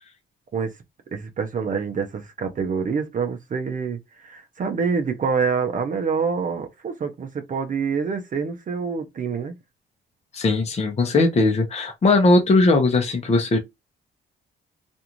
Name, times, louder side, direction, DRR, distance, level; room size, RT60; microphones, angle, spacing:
voice 1, 1.1-9.5, right 5 dB, 40° right, 0.6 m, -26 dB
voice 2, 10.3-13.6, left 2 dB, 35° left, 0.8 m, -19 dB
2.5 x 2.4 x 2.9 m
cardioid pair, 90°, 20 cm